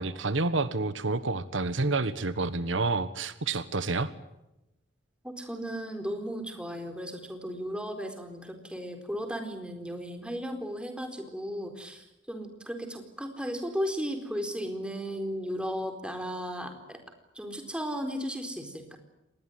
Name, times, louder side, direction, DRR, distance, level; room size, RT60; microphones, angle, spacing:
voice 1, 0.0-4.1, right 3 dB, 75° right, 14 dB, 1.4 m, -29 dB
voice 2, 5.2-17.0 17.4-19.0, equal, 5° right, 6 dB, 4.1 m, -35 dB
26.5 x 20.0 x 9.2 m, 0.91 s
head